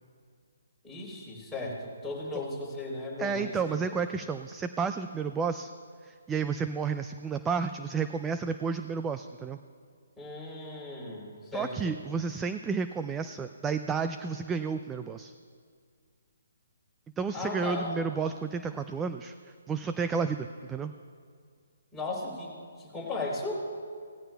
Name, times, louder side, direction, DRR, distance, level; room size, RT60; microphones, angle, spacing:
voice 1, 0.8-4.0 10.2-11.9 17.3-17.9 21.9-22.5 22.8-23.6, left 2 dB, 5° left, -6 dB, 3.6 m, -36 dB
voice 2, 3.2-5.7 6.0-9.6 11.5-15.3 17.2-19.3 19.7-20.9, right 5 dB, 10° right, 9 dB, 0.3 m, -31 dB
18.0 x 13.5 x 2.3 m, 2.1 s
figure-of-eight pair, 140°, 0 cm